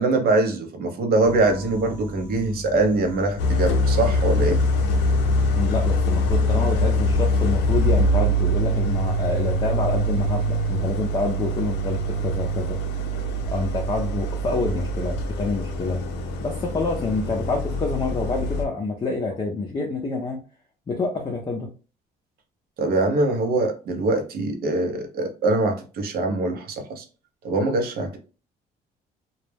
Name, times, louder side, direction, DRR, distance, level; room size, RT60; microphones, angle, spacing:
voice 1, 0.0-4.6 22.8-27.0 27.4-28.2, right 2 dB, 65° right, 0.7 m, -23 dB
sound 1, 1.2-7.5, left 1 dB, 10° right, 0.7 m, -36 dB
Idling, 3.4-18.7, equal, 90° left, 0.5 m, -23 dB
voice 2, 5.5-12.8 13.5-16.0 16.4-20.4 20.9-21.7, left 3 dB, 25° left, 0.5 m, -27 dB
2.2 x 2.0 x 3.2 m
cardioid pair, 110°, 17 cm